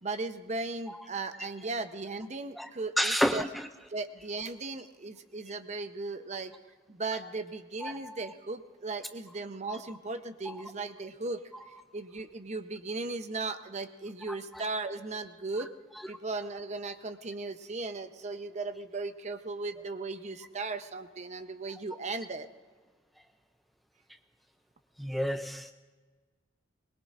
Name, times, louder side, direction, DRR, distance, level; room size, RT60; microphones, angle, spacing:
voice 1, 0.0-3.5 3.9-6.5 6.9-11.4 11.9-15.7 16.1-22.5, right 3 dB, 40° right, 0.8 m, -37 dB
voice 2, 3.0-3.7 7.8-8.3 9.7-10.0 10.5-10.6 11.5-11.8 14.3-14.7 16.0-16.1 25.0-25.7, equal, ahead, 0.3 m, -32 dB
22.5 x 21.0 x 2.5 m
head